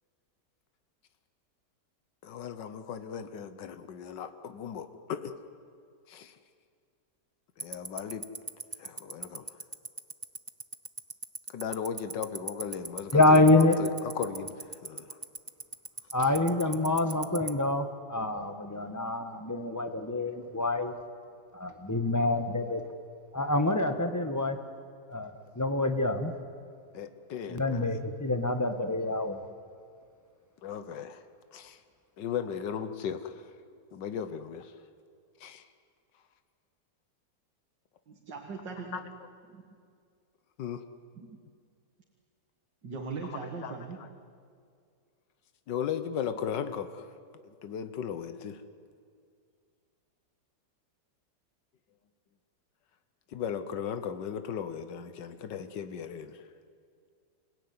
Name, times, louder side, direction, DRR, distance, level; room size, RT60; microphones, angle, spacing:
voice 1, 2.2-5.3 6.1-6.3 7.6-8.3 8.8-9.4 11.5-14.6 14.8-15.2 26.9-27.9 30.6-31.2 31.5-31.8 32.2-33.4 33.9-34.7 35.4-35.6 38.9-39.0 40.6-40.8 43.2-44.1 45.7-47.1 47.4-48.6 53.3-56.4, left 8 dB, 85° left, 10 dB, 1.7 m, -37 dB
Tick-tock, 7.6-17.5, right 3 dB, 30° right, 0.4 m, -35 dB
voice 2, 13.1-13.8 16.1-20.9 21.5-22.8 23.3-24.6 25.1-26.3 27.5-29.4, left 2 dB, 10° left, 6 dB, 1.3 m, -26 dB
voice 3, 38.1-39.0 39.5-39.6 41.2-41.4 42.8-44.0, right 4 dB, 90° right, 1 dB, 2.5 m, -39 dB
28.0 x 17.0 x 9.6 m, 2.2 s
omnidirectional pair, 1.9 m